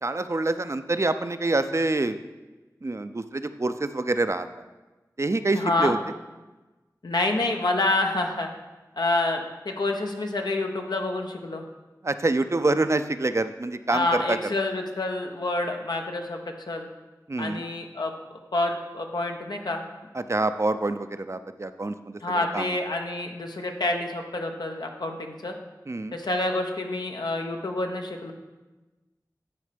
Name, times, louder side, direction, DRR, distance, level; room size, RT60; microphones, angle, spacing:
voice 1, 0.0-2.2 2.8-4.5 5.2-6.0 12.0-14.4 17.3-17.6 20.1-22.8 25.9-26.2, right 2 dB, 45° right, 10 dB, 0.4 m, -26 dB
voice 2, 5.5-5.9 7.0-8.5 8.9-11.7 13.9-16.4 16.7-16.9 17.4-19.8 22.2-25.5 26.1-28.3, left 2 dB, 85° left, 3 dB, 0.9 m, -28 dB
9.8 x 4.3 x 5.1 m, 1.2 s
wide cardioid pair, 45°, 7 cm